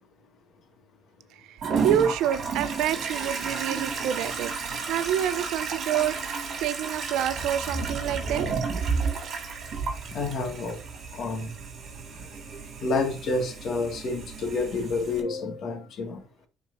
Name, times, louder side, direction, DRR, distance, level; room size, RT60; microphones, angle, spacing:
Toilet flush, 1.6-15.2, right 5 dB, 45° right, 2.7 m, -32 dB
voice 1, 1.8-8.5, right 10 dB, 80° right, 0.6 m, -28 dB
voice 2, 10.1-10.8 11.1-11.5 12.2-12.3 12.8-16.2, left 3 dB, 50° left, 2.0 m, -29 dB
11.0 x 4.5 x 2.7 m
cardioid pair, 150°, 0 cm